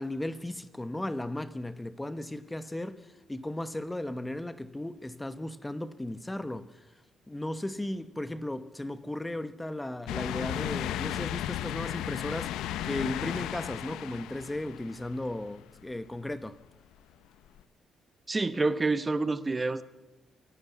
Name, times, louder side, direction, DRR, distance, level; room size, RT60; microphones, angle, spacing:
voice 1, 0.0-6.8 7.3-12.5 12.8-16.6, left 1 dB, 10° left, 1.0 m, -36 dB
sound 1, 10.1-15.6 16.1-16.2 17.6-17.7, left 12 dB, 90° left, 0.7 m, -35 dB
voice 2, 18.3-19.8, right 3 dB, 25° right, 1.1 m, -28 dB
27.0 x 12.0 x 8.3 m
cardioid pair, 90°, 0 cm